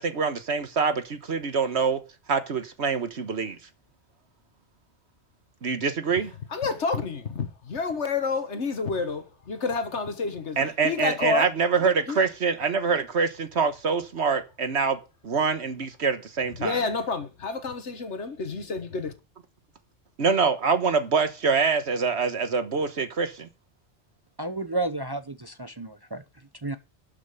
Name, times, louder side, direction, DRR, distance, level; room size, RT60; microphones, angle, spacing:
voice 1, 0.0-2.0 2.3-3.6 5.6-6.3 10.6-15.0 15.2-16.8 20.2-23.5, right 5 dB, 70° right, 1.5 m, -25 dB
voice 2, 6.5-10.6 10.8-11.5 12.1-12.2 16.6-19.1, left 4 dB, 80° left, 1.8 m, -29 dB
voice 3, 24.4-26.2 26.6-26.8, right 2 dB, 25° right, 0.7 m, -31 dB
12.5 x 5.9 x 6.7 m
omnidirectional pair, 1.2 m